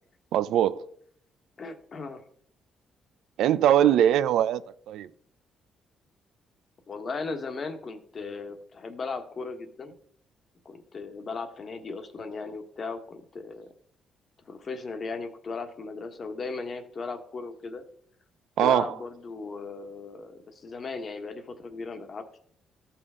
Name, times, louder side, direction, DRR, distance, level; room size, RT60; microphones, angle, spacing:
voice 1, 0.3-0.8 3.4-4.6 4.9-5.1 18.6-18.9, right 10 dB, 85° right, 0.4 m, -21 dB
voice 2, 1.6-2.2 6.9-9.9 10.6-13.7 14.5-17.8 18.6-22.2, left 4 dB, 45° left, 1.4 m, -37 dB
14.0 x 5.8 x 3.7 m
cardioid pair, 90°, 0 cm